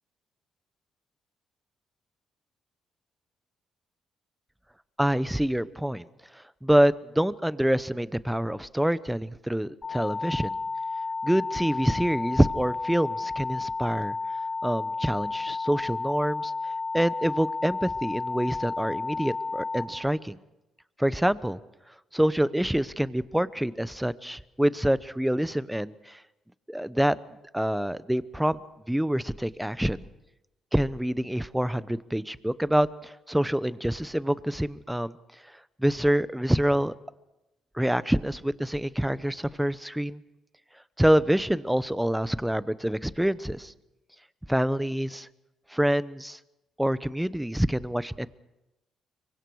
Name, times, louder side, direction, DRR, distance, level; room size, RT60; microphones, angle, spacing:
voice 1, 5.0-6.0 6.6-10.6 11.2-14.1 14.6-16.5 16.9-20.4 21.0-21.6 22.1-26.2 26.7-27.2 27.5-28.6 28.9-30.0 30.7-35.1 35.8-36.9 37.8-40.2 41.0-43.7 44.5-45.3 45.7-46.4 46.8-48.3, equal, 5° right, 16 dB, 0.8 m, -26 dB
sound 1, 9.8-19.8, left 3 dB, 30° left, 4.9 m, -32 dB
26.0 x 23.5 x 4.8 m, 0.97 s
cardioid pair, 90°, 0 cm